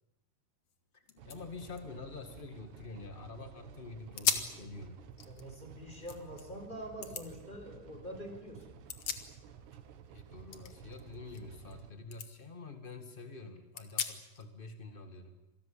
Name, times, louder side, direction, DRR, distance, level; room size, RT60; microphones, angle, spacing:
sound 1, 0.7-0.8 1.0-3.2 3.7-3.8 4.2-4.6 5.0-6.4 7.0-7.3 8.6-9.7 10.0-11.8 12.1-12.3 12.8-12.9 13.7-14.5, left 7 dB, 50° left, 2.1 m, -39 dB
voice 1, 0.9-5.0 10.1-15.4, left 3 dB, 70° left, 7 dB, 0.5 m, -47 dB
sound 2, 1.2-11.9, right 8 dB, 90° right, 3.6 m, -53 dB
voice 2, 5.2-8.8 11.2-11.4, equal, 10° left, 5 dB, 4.9 m, -45 dB
27.0 x 19.0 x 8.8 m, 0.96 s
omnidirectional pair, 4.6 m